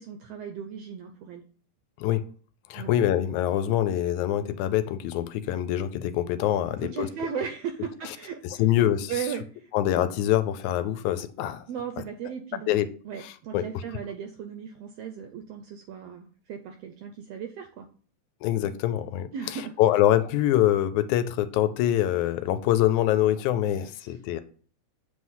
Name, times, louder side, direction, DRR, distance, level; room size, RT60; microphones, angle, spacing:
voice 1, 0.0-1.4 2.7-2.9 6.8-8.6 9.1-9.7 11.7-17.9 19.3-19.7, right 7 dB, 80° right, 1.5 m, -36 dB
voice 2, 2.7-7.1 8.1-8.2 8.4-9.1 9.7-11.7 12.0-12.1 12.7-12.9 13.2-13.7 18.4-24.4, left 12 dB, 80° left, 2.0 m, -25 dB
7.9 x 3.2 x 5.5 m
omnidirectional pair, 3.5 m